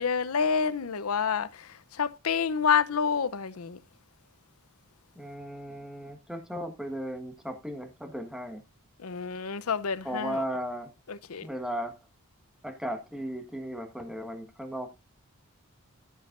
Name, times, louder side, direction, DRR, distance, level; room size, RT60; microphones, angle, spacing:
voice 1, 0.0-3.8 9.0-10.4 11.1-11.5, left 6 dB, 75° left, 0.7 m, -28 dB
voice 2, 5.1-8.6 10.0-10.9 11.4-12.0 12.6-14.9, equal, 5° right, 1.4 m, -36 dB
13.0 x 7.3 x 2.5 m
head